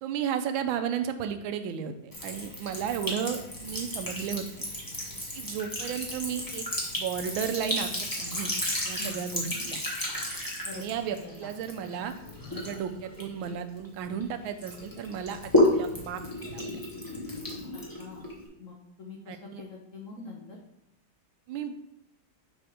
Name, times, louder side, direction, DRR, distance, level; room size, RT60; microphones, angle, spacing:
voice 1, 0.0-4.6 5.3-6.7 6.9-7.9 8.2-8.5 8.8-9.8 10.7-12.1 12.5-16.2 16.5-16.8 19.3-19.6 21.5-21.9, right 8 dB, 85° right, 8 dB, 1.4 m, -34 dB
Sink (filling or washing) / Trickle dribble, 2.1-14.2 14.6-18.5, left 1 dB, 15° left, 1.0 m, -32 dB
voice 2, 10.6-11.3 12.5-12.7 18.0-18.3 18.6-20.6, left 3 dB, 55° left, 0 dB, 0.9 m, -44 dB
6.6 x 3.4 x 4.9 m, 0.84 s
omnidirectional pair, 2.2 m